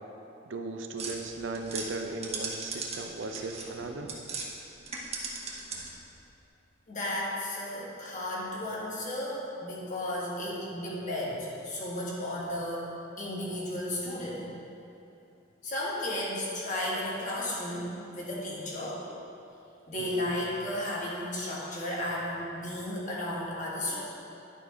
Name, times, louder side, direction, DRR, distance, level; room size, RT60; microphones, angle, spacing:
voice 1, 0.5-4.1 20.1-20.2, right 3 dB, 70° right, 5 dB, 0.6 m, -37 dB
sound 1, 1.0-4.5 4.8-6.1, right 4 dB, 35° right, 1.0 m, -38 dB
voice 2, 6.9-12.9 13.2-14.5 15.6-19.0 19.9-24.0, left 1 dB, 40° left, -6 dB, 1.8 m, -34 dB
11.0 x 5.3 x 3.6 m, 2.8 s
head